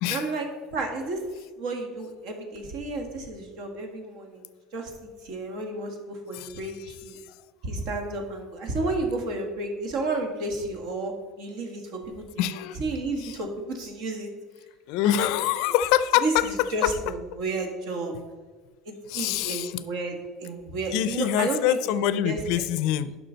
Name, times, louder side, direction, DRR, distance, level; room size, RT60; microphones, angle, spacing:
voice 1, 0.1-0.5 0.7-1.2 1.6-4.5 4.7-4.9 5.2-7.2 7.6-14.3 15.0-15.3 16.2-18.2 18.8-22.6, right 2 dB, 60° right, 3 dB, 1.8 m, -32 dB
voice 2, 12.4-12.8 13.2-13.4 14.9-16.9 19.1-19.8 20.9-23.2, left 12 dB, 65° left, 14 dB, 0.5 m, -25 dB
11.0 x 5.8 x 4.0 m, 1.4 s
cardioid pair, 155°, 0 cm